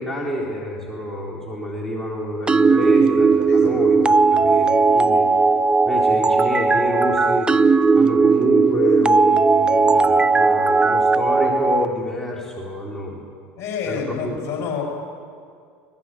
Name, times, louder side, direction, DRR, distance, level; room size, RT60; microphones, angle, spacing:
voice 1, 0.0-5.3 5.9-7.5 7.9-13.2 13.8-14.4, left 1 dB, 5° left, -3 dB, 4.2 m, -28 dB
sound 1, 2.5-11.9, right 4 dB, 15° right, 0.6 m, -17 dB
voice 2, 3.5-3.8 4.2-4.5 13.6-14.8, left 6 dB, 45° left, 1 dB, 7.5 m, -29 dB
22.5 x 19.5 x 7.8 m, 2.2 s
hypercardioid pair, 85°, 7 cm